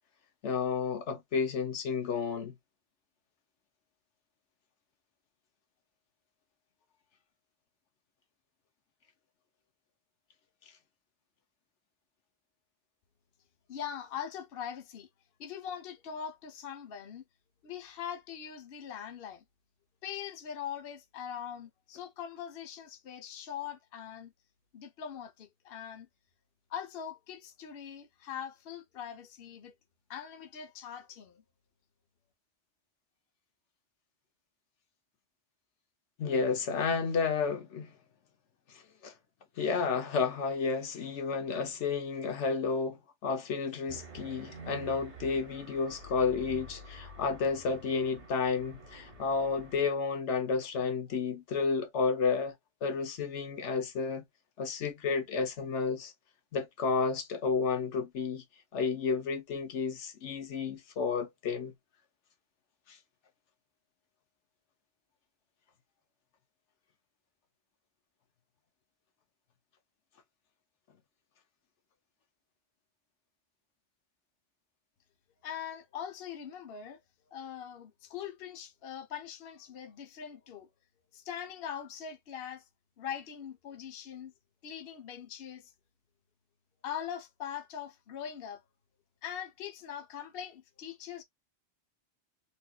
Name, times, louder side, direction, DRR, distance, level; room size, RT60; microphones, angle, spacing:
voice 1, 0.4-2.5 36.2-37.9 39.0-39.1 39.6-52.5 52.8-54.2 54.6-56.1 56.5-58.4 58.7-61.7 62.9-63.0, left 5 dB, 85° left, 1.1 m, -31 dB
voice 2, 13.7-15.1 15.4-17.2 17.6-19.4 20.0-24.3 24.7-26.1 26.7-29.7 30.1-31.4 75.4-77.0 77.3-80.7 81.1-82.6 83.0-84.3 84.6-85.7 86.8-88.6 89.2-91.2, left 9 dB, 60° left, 0.9 m, -42 dB
sound 1, 43.9-49.8, right 2 dB, 80° right, 1.5 m, -49 dB
4.2 x 2.5 x 2.2 m
omnidirectional pair, 1.2 m